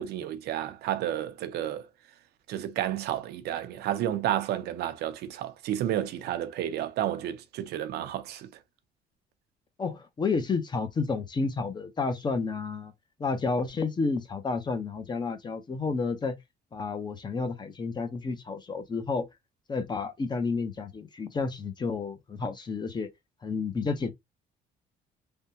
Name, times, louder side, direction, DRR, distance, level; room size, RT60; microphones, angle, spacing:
voice 1, 0.0-1.8 2.5-8.5, right 12 dB, 75° right, 0.6 m, -31 dB
voice 2, 9.8-12.9 13.2-16.4 16.7-19.3 19.7-23.1 23.4-24.1, left 4 dB, 25° left, 0.7 m, -30 dB
3.4 x 2.2 x 2.7 m
cardioid pair, 110°, 17 cm